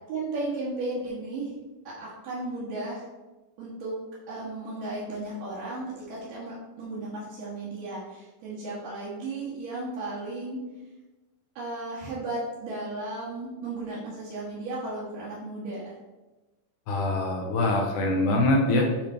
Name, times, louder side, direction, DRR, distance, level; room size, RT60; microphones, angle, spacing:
voice 1, 0.1-1.5 1.8-3.0 3.6-3.9 4.3-10.6 11.6-16.0, right 2 dB, 80° right, -9 dB, 3.2 m, -35 dB
voice 2, 16.9-18.9, left 2 dB, 80° left, 1 dB, 2.4 m, -23 dB
9.5 x 3.4 x 4.5 m, 1.1 s
omnidirectional pair, 3.7 m